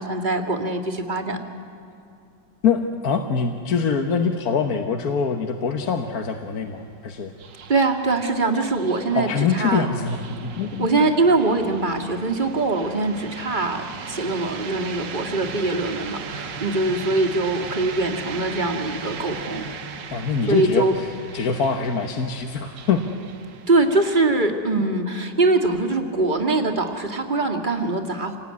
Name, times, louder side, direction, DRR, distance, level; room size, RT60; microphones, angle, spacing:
voice 1, 0.0-1.4 7.7-9.9 10.8-19.6 20.5-21.0 23.7-28.4, right 2 dB, 25° right, 5 dB, 1.9 m, -22 dB
voice 2, 2.6-7.3 9.1-10.2 10.4-10.9 20.1-21.1 21.3-23.1 24.7-24.8, left 6 dB, 55° left, 5 dB, 1.5 m, -24 dB
sound 1, 5.5-24.4, right 6 dB, 75° right, 1.9 m, -38 dB
26.5 x 19.0 x 9.6 m, 2.7 s
omnidirectional pair, 2.0 m